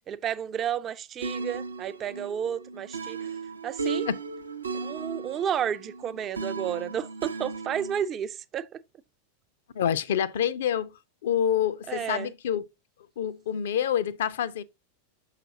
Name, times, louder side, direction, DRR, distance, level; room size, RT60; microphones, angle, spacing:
voice 1, 0.1-3.2 3.6-4.1 4.7-8.7 11.9-12.3, right 9 dB, 30° right, 0.4 m, -31 dB
sound 1, 1.2-8.1, right 4 dB, 75° right, 0.6 m, -36 dB
voice 2, 9.7-10.9 11.2-12.7 13.2-14.6, left 9 dB, 60° left, 0.4 m, -27 dB
6.6 x 5.7 x 2.7 m
figure-of-eight pair, 90°, 0 cm